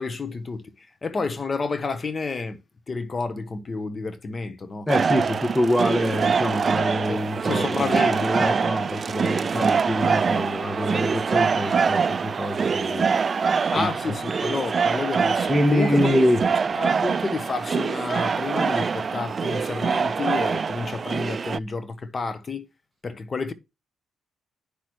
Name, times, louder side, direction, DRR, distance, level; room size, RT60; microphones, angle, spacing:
voice 1, 0.0-2.6 2.9-4.9 7.1-8.7 9.5-9.8 13.7-16.1 16.4-22.7 23.0-23.5, left 4 dB, 35° left, 1.1 m, -30 dB
voice 2, 4.9-13.4 13.7-13.9 15.5-16.4, equal, 5° left, 1.7 m, -25 dB
sound 1, 4.9-21.6, right 5 dB, 40° right, 0.3 m, -24 dB
10.0 x 6.1 x 3.1 m
cardioid pair, 90°, 0 cm